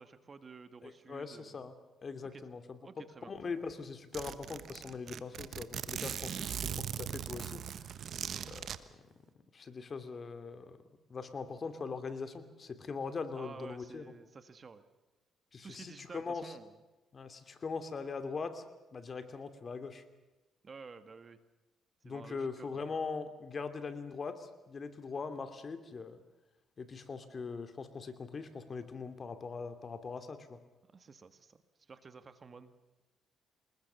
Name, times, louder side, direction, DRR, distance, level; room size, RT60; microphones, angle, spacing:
voice 1, 0.0-1.6 2.3-2.4 2.8-3.3 13.3-14.8 15.6-16.8 20.6-21.4 22.0-23.0 30.9-31.6 31.9-32.7, right 4 dB, 40° right, 11 dB, 1.8 m, -51 dB
voice 2, 0.8-1.7 2.0-7.6 8.0-8.1 8.4-8.8 9.5-10.8 11.1-14.1 15.5-16.5 17.1-18.6 18.9-20.0 22.0-26.2 26.8-30.6, left 4 dB, 40° left, 9 dB, 2.6 m, -41 dB
Zipper (clothing), 3.4-3.5 3.7-3.8 4.1-8.8, right 8 dB, 60° right, 1.2 m, -40 dB
26.5 x 20.5 x 6.9 m, 1.1 s
cardioid pair, 90°, 0 cm